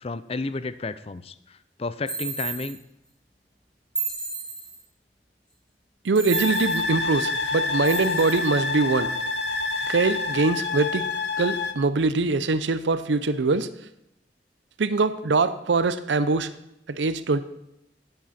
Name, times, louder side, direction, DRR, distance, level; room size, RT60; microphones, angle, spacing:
voice 1, 0.0-2.8, left 3 dB, 35° left, 14 dB, 0.5 m, -32 dB
sound 1, 2.1-2.8 3.9-4.8 6.1-6.9 7.8-8.5, right 5 dB, 5° left, 1.8 m, -32 dB
voice 2, 6.0-9.1 9.9-11.1 11.4-13.7 14.8-16.5 16.9-17.4, right 3 dB, 90° right, 13 dB, 0.6 m, -23 dB
sound 2, 6.3-11.7, left 3 dB, 70° left, 0.9 m, -27 dB
13.5 x 8.8 x 4.2 m, 0.81 s
head